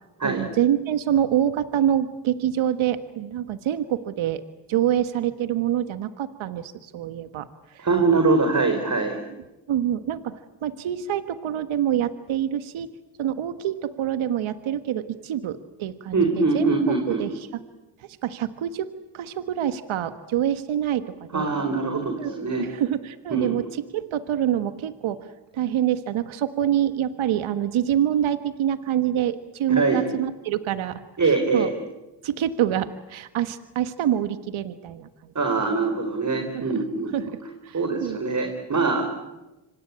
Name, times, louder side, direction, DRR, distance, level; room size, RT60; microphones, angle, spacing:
voice 1, 0.2-4.4 4.7-7.5 7.7-7.9 9.7-12.9 13.2-16.7 17.1-17.6 18.2-18.9 19.1-21.5 22.2-25.2 25.5-31.7 32.2-35.1 35.6-35.7 36.5-36.8 37.1-38.2, right 10 dB, 70° right, 11 dB, 1.6 m, -26 dB
voice 2, 7.8-9.1 16.1-17.2 21.3-22.7 23.3-23.5 29.7-30.0 31.2-31.7 35.3-37.3 37.7-39.0, right 4 dB, 35° right, 5 dB, 4.5 m, -23 dB
26.0 x 25.5 x 8.7 m, 1.0 s
supercardioid pair, 65°, 49 cm